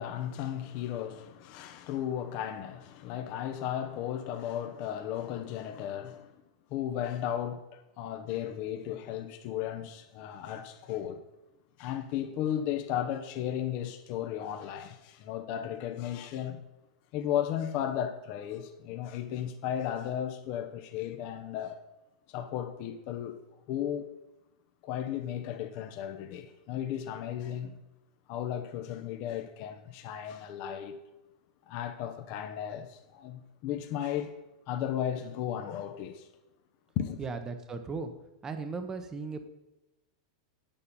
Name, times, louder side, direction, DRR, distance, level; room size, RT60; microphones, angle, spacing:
voice 1, 0.0-6.3 6.7-11.2 11.8-16.6 17.1-21.8 22.3-23.4 23.7-24.1 24.8-27.8 28.3-31.0 31.6-34.3 34.7-36.3 37.0-37.2, left 10 dB, 45° left, 0.9 m, -35 dB
voice 2, 37.2-38.1 38.4-39.5, right 4 dB, 15° right, 0.9 m, -37 dB
8.4 x 7.2 x 5.4 m
supercardioid pair, 140°, 3 cm